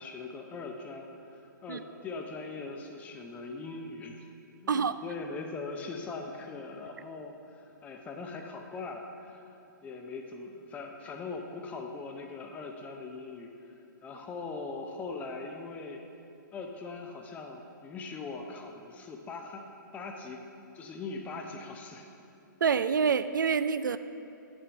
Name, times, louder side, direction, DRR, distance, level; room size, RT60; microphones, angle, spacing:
voice 1, 0.0-4.3 4.6-9.6 9.8-13.7 14.0-16.0 16.5-19.6 19.9-20.4 20.7-22.1, left 3 dB, 15° left, 2 dB, 0.6 m, -41 dB
voice 2, 4.7-5.0 22.6-24.0, right 6 dB, 70° right, 13 dB, 0.4 m, -26 dB
8.1 x 6.2 x 7.0 m, 2.6 s
figure-of-eight pair, 120°, 11 cm